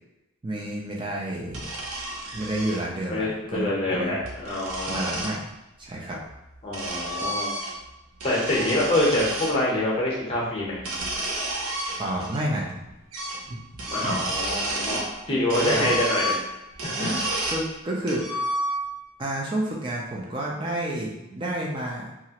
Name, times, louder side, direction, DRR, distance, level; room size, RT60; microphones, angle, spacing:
voice 1, 0.4-1.7 2.3-4.1 4.9-5.4 5.8-6.2 12.0-12.7 13.5-13.6 14.0-14.2 15.3-16.0 17.0-18.4 19.2-22.1, right 1 dB, 20° right, -3 dB, 0.4 m, -30 dB
sound 1, 1.5-2.8 4.0-5.4 6.3-7.9 8.2-9.6 10.7-12.4 12.7-12.8 13.1-13.4 13.7-15.1 15.5-17.7 18.1-19.0, right 1 dB, 80° right, 0.6 m, -30 dB
voice 2, 3.1-5.1 6.6-7.6 8.2-10.8 13.8-16.3 16.8-17.1, left 1 dB, 25° left, -5 dB, 0.8 m, -26 dB
2.9 x 2.4 x 2.8 m, 0.93 s
head